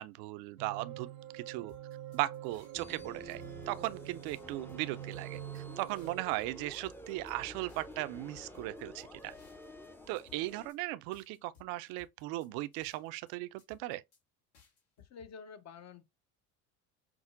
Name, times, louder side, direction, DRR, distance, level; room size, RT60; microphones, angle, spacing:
voice 1, 0.0-1.7 2.1-9.3 10.1-14.0, right 18 dB, 65° right, 0.5 m, -38 dB
sound 1, 0.6-6.2, right 12 dB, 85° right, 0.9 m, -46 dB
sound 2, 1.7-3.0 3.3-3.9 4.3-6.5 6.7-7.3 7.7-9.9 10.2-10.8 11.1-13.3 13.6-14.2 14.5-15.3, left 8 dB, 75° left, 1.7 m, -62 dB
sound 3, 2.7-10.7, equal, 5° left, 0.5 m, -50 dB
voice 2, 15.0-16.0, left 6 dB, 40° left, 0.7 m, -49 dB
5.9 x 2.0 x 2.4 m
hypercardioid pair, 80°, 39 cm